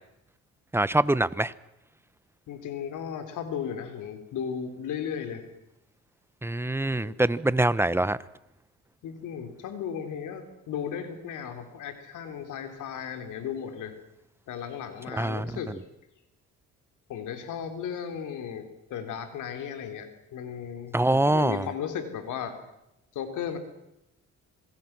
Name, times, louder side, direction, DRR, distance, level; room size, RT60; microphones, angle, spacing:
voice 1, 0.7-1.5 6.4-8.2 15.1-15.5 20.9-21.7, right 1 dB, 10° right, 0.9 m, -24 dB
voice 2, 2.5-5.4 7.0-7.2 9.0-13.9 14.5-15.8 17.1-22.6 23.1-23.6, left 8 dB, 80° left, 3.8 m, -35 dB
27.0 x 22.0 x 6.1 m
cardioid pair, 90°, 30 cm